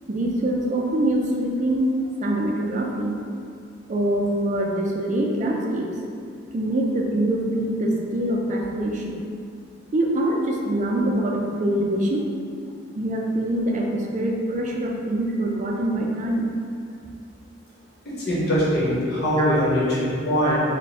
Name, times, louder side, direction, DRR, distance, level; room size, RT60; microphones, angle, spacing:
voice 1, 0.1-3.1 3.9-5.9 6.5-9.2 9.9-12.3 13.0-16.5 19.4-19.5 20.4-20.6, right 1 dB, 40° right, 0 dB, 0.4 m, -24 dB
voice 2, 18.0-20.6, equal, 60° left, -8 dB, 1.1 m, -22 dB
3.5 x 2.2 x 4.0 m, 2.3 s
head